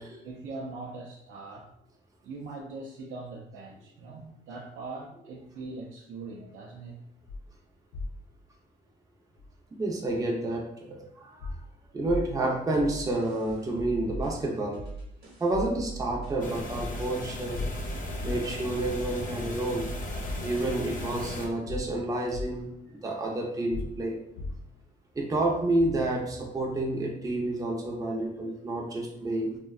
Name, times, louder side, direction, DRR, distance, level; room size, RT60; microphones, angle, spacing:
voice 1, 0.0-1.7 2.2-7.0, right 3 dB, 70° right, -4 dB, 0.5 m, -41 dB
sound 1, 7.3-7.4 7.9-8.2 9.4-9.5 11.4-11.6 12.0-12.3 13.5-13.6 14.1-14.3 15.5-15.8 16.2-16.3 17.5-18.7 19.6-19.7 20.3-20.5 21.7-22.6 23.7-24.8 25.8-26.0, left 2 dB, 85° left, 0.4 m, -36 dB
voice 2, 9.8-11.5 11.9-14.8 15.4-17.6 18.2-19.9 20.4-22.7 23.0-24.2 25.2-29.6, right 2 dB, 15° right, -1 dB, 0.5 m, -29 dB
sound 2, 12.7-20.5, right 2 dB, 55° right, 0.9 m, -42 dB
sound 3, 16.4-21.5, left 2 dB, 40° left, 0.6 m, -37 dB
2.6 x 2.1 x 2.3 m, 0.79 s
cardioid pair, 90°, 20 cm